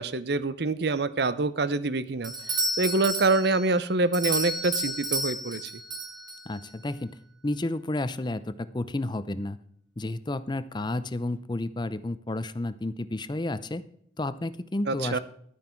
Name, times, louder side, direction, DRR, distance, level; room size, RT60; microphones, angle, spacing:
voice 1, 0.0-2.3 2.8-5.7 14.9-15.2, right 3 dB, 60° right, 15 dB, 0.7 m, -26 dB
Doorbell, 2.2-6.7, right 1 dB, 25° right, 1.5 m, -31 dB
voice 2, 6.5-7.2 7.4-9.6 10.0-13.8 14.2-15.2, left 2 dB, 25° left, 14 dB, 0.6 m, -31 dB
12.0 x 9.3 x 4.5 m, 0.67 s
head